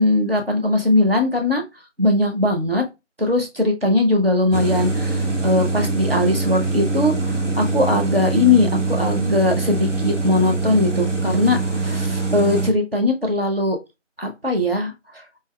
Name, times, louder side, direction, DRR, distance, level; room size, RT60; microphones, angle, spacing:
voice 1, 0.0-1.6 2.0-2.8 3.2-13.8 14.2-14.9, left 2 dB, 50° right, 3 dB, 0.9 m, -20 dB
sound 1, 4.5-12.7, right 3 dB, 70° right, 1.2 m, -23 dB
4.6 x 2.5 x 2.3 m, 0.24 s
figure-of-eight pair, 180°, 37 cm